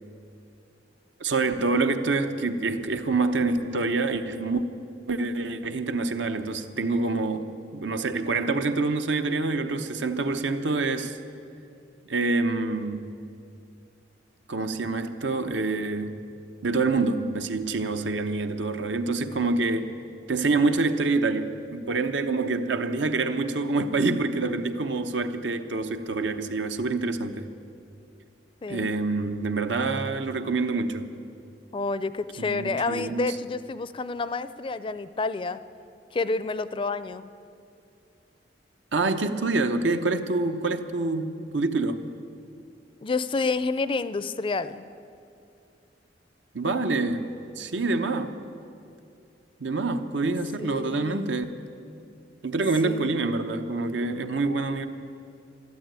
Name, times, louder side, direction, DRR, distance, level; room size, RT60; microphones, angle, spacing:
voice 1, 1.2-4.6 5.1-7.5 7.7-11.2 12.1-13.0 14.5-16.1 16.6-19.9 20.3-27.5 28.7-31.1 32.4-33.4 38.9-42.1 46.5-48.4 49.6-51.4 52.4-54.9, right 3 dB, 90° right, 8 dB, 0.9 m, -26 dB
voice 2, 31.7-35.6 36.1-37.3 43.0-44.9 50.6-51.3 52.8-53.2, left 3 dB, 30° left, 14 dB, 0.4 m, -29 dB
13.5 x 12.0 x 8.9 m, 2.5 s
head